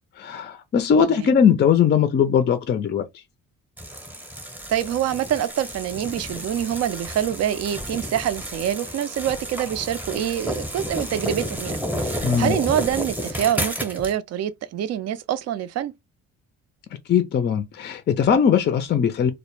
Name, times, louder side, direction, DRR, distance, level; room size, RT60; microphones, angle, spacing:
voice 1, 0.2-3.0 12.2-12.6 17.1-19.3, left 7 dB, 35° left, 0.4 m, -20 dB
sound 1, 3.8-14.2, equal, 5° right, 0.7 m, -31 dB
voice 2, 4.7-15.9, right 10 dB, 55° right, 0.4 m, -26 dB
2.1 x 2.0 x 2.9 m
cardioid pair, 90°, 30 cm